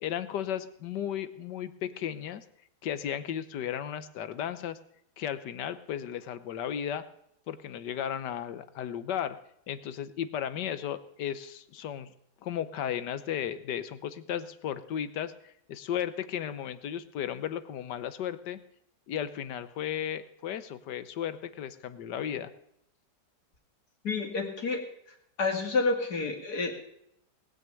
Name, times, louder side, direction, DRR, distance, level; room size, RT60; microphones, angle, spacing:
voice 1, 0.0-2.4 2.8-4.8 5.2-7.0 7.5-9.4 9.7-12.1 12.4-18.6 19.1-22.5, left 9 dB, 75° left, 13 dB, 1.5 m, -35 dB
voice 2, 24.0-24.8 25.4-26.8, left 3 dB, 60° left, 2 dB, 2.9 m, -29 dB
19.0 x 6.6 x 8.9 m, 0.74 s
omnidirectional pair, 1.9 m